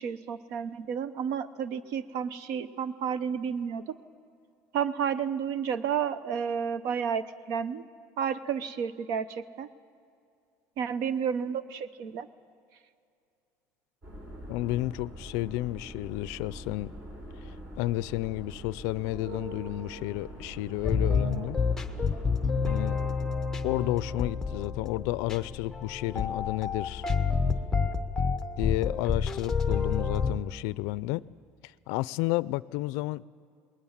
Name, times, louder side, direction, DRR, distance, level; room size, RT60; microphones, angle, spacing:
voice 1, 0.0-4.0 4.7-7.8 8.2-9.7 10.8-12.3, right 7 dB, 60° right, 0.8 m, -31 dB
sound 1, 14.0-23.3, right 1 dB, 35° right, 4.4 m, -44 dB
voice 2, 14.5-16.9 17.8-21.6 22.7-23.0 23.6-27.0 28.6-31.2 31.6-33.2, left 18 dB, 75° left, 0.4 m, -31 dB
sound 2, 20.8-30.3, left 5 dB, 10° left, 0.8 m, -29 dB
20.0 x 19.0 x 7.3 m
cardioid pair, 175°, 6 cm